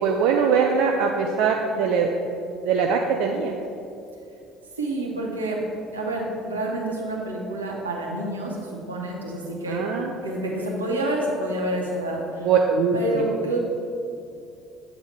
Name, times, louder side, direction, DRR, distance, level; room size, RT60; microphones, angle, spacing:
voice 1, 0.0-2.1 2.6-3.6 9.7-10.2 12.4-12.9, right 6 dB, 60° right, 2 dB, 0.4 m, -22 dB
voice 2, 4.8-5.6 5.9-9.8 10.2-12.5 12.9-13.6, right 1 dB, 85° right, -2 dB, 0.9 m, -28 dB
8.1 x 4.0 x 4.6 m, 2.6 s
figure-of-eight pair, 55°, 0 cm